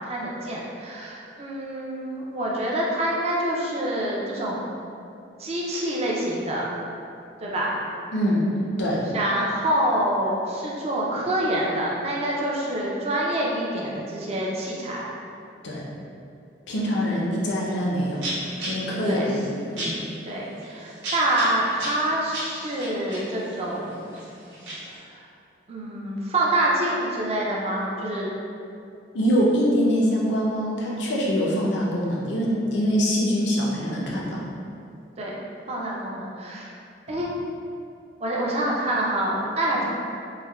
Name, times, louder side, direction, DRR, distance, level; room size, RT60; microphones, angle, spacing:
voice 1, 0.1-4.6 5.4-6.6 7.4-7.7 9.1-15.1 16.9-17.2 19.0-19.3 20.3-24.1 25.0-25.1 25.7-28.3 35.2-35.4 35.7-36.7 37.1-37.3 38.2-39.8, right 1 dB, 35° right, -4 dB, 0.4 m, -26 dB
voice 2, 8.1-8.5 8.8-9.0 15.6-15.8 16.7-18.2 18.6-19.9 29.1-34.5, equal, 70° left, -4 dB, 0.5 m, -24 dB
sound 1, 17.7-17.8 18.2-25.0, right 1 dB, 85° right, 0.8 m, -35 dB
3.2 x 2.1 x 2.2 m, 2.6 s
head